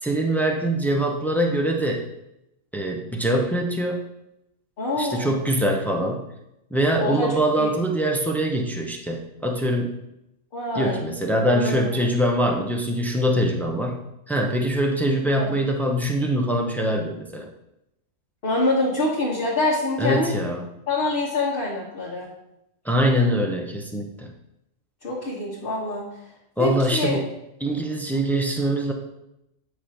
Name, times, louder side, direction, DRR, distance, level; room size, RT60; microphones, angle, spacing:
voice 1, 0.0-2.1 2.7-4.0 5.0-6.3 6.7-10.0 10.7-17.5 20.0-20.7 22.8-24.3 26.6-27.3 27.6-28.9, right 1 dB, 5° left, 2 dB, 0.3 m, -23 dB
voice 2, 4.8-5.4 7.0-7.3 7.6-7.7 10.5-11.0 11.5-11.8 15.4-15.5 18.4-20.3 20.9-22.3 25.0-26.0 26.6-27.2, left 2 dB, 45° left, -5 dB, 1.4 m, -25 dB
8.5 x 3.1 x 5.7 m, 0.85 s
omnidirectional pair, 1.4 m